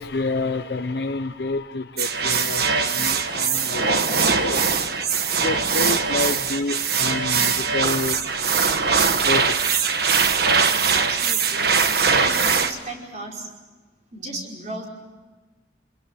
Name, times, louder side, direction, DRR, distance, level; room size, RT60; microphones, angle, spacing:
voice 1, 0.0-4.6 5.4-8.4 9.3-9.6 9.9-10.2, left 3 dB, 60° left, 6 dB, 0.8 m, -29 dB
sound 1, 2.0-12.7, right 5 dB, 55° right, 1.5 m, -21 dB
voice 2, 10.9-11.7 12.2-13.5 14.1-14.9, right 2 dB, 40° right, 0 dB, 5.3 m, -35 dB
27.5 x 22.0 x 7.9 m, 1.3 s
head